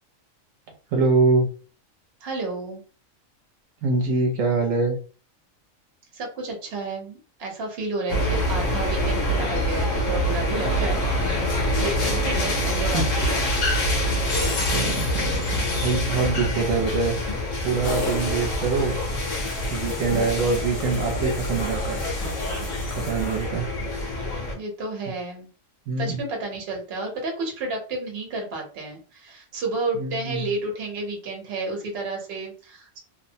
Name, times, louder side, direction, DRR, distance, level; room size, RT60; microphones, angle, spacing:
voice 1, 0.9-1.5 3.8-5.0 12.4-12.5 12.9-13.0 14.7-17.2 17.6-19.0 19.7-22.0 23.0-23.7 25.9-26.2 29.9-30.4, right 4 dB, 75° right, 1 dB, 1.0 m, -24 dB
voice 2, 2.2-2.8 6.1-13.5 18.7-19.0 20.1-20.6 24.6-25.5 26.0-33.0, right 3 dB, 55° right, 2 dB, 1.0 m, -31 dB
sound 1, 8.1-24.5, left 1 dB, 75° left, 1.1 m, -25 dB
sound 2, 17.8-23.9, left 2 dB, 50° left, 0.7 m, -35 dB
2.7 x 2.0 x 2.6 m, 0.38 s
omnidirectional pair, 1.4 m